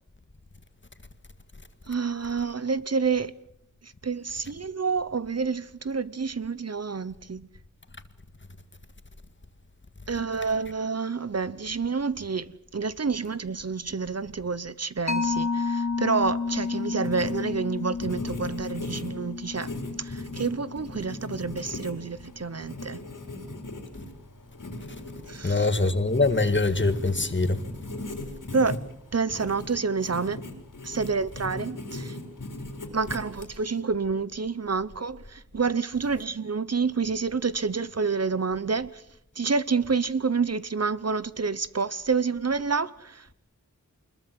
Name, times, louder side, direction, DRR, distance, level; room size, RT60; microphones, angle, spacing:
voice 1, 1.9-3.3 3.8-7.5 10.1-19.7 20.0-23.0 25.3-25.7 28.5-28.8 29.1-30.4 30.8-32.2 32.9-39.0 39.4-43.3, right 5 dB, 50° right, 0.8 m, -28 dB
Mallet percussion, 15.1-22.1, left 4 dB, 60° left, 2.7 m, -32 dB
Writing, 16.6-33.8, left 1 dB, 75° left, 4.5 m, -39 dB
voice 2, 25.4-27.6, left 3 dB, 35° left, 1.9 m, -23 dB
25.0 x 21.5 x 7.6 m
wide cardioid pair, 80°, 32 cm